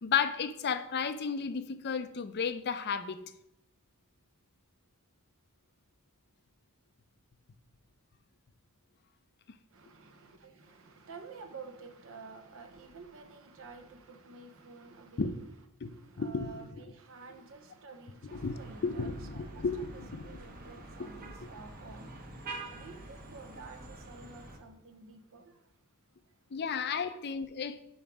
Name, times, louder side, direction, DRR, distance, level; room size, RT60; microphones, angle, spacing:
voice 1, 0.0-3.2 15.2-15.4 15.8-15.9 16.2-16.6 18.3-20.2 26.5-27.8, left 6 dB, 50° left, 0.5 m, -33 dB
voice 2, 9.7-15.4 15.8-22.5 22.7-25.5 27.1-27.2, right 4 dB, 60° right, 0.7 m, -51 dB
sound 1, 18.3-24.6, right 2 dB, 40° right, 1.0 m, -46 dB
5.3 x 4.6 x 5.8 m
head